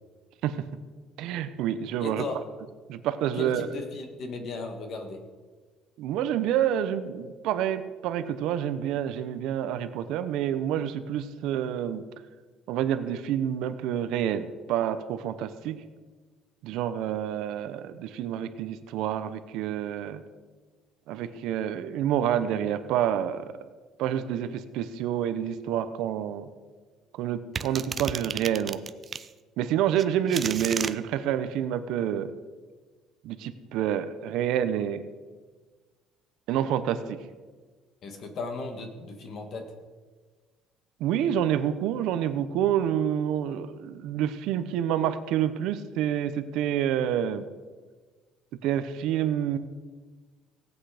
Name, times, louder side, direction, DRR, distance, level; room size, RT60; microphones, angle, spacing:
voice 1, 1.2-2.2 2.9-3.7 6.0-12.0 12.7-15.8 16.6-20.2 21.1-23.6 24.0-26.5 27.2-28.8 29.6-32.3 33.2-35.0 36.5-37.3 41.0-47.5 48.5-49.6, right 10 dB, 70° right, 11 dB, 0.8 m, -28 dB
voice 2, 2.0-2.4 3.4-5.2 38.0-39.7, left 3 dB, 40° left, 6 dB, 1.6 m, -36 dB
sound 1, 27.6-29.3 30.0-30.9, right 6 dB, 25° right, 0.4 m, -33 dB
17.5 x 8.3 x 5.0 m, 1.4 s
cardioid pair, 170°, 0 cm